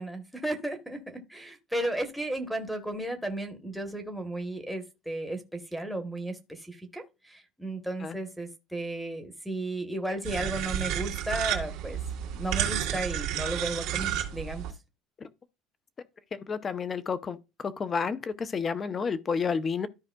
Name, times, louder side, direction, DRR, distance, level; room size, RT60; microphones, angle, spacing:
voice 1, 0.0-12.0 12.3-14.7, right 1 dB, ahead, 1.0 m, -34 dB
sound 1, 10.2-14.7, right 10 dB, 75° right, 1.9 m, -31 dB
voice 2, 16.5-17.4 17.6-19.9, left 5 dB, 25° left, 0.6 m, -30 dB
13.5 x 4.8 x 2.2 m
cardioid pair, 150°, 0 cm